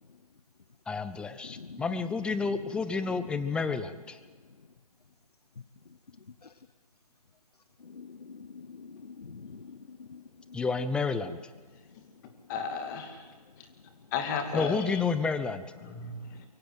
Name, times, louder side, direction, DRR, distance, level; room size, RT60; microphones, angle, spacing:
voice 1, 0.9-4.2 10.5-11.4 14.5-15.6, left 4 dB, 5° left, 12 dB, 0.7 m, -30 dB
voice 2, 7.8-10.2, left 5 dB, 80° left, 12 dB, 1.0 m, -46 dB
voice 3, 12.5-13.2 14.1-15.0 15.8-16.5, left 5 dB, 30° left, 6 dB, 2.6 m, -34 dB
23.5 x 16.5 x 8.1 m, 1.4 s
figure-of-eight pair, 140°, 20 cm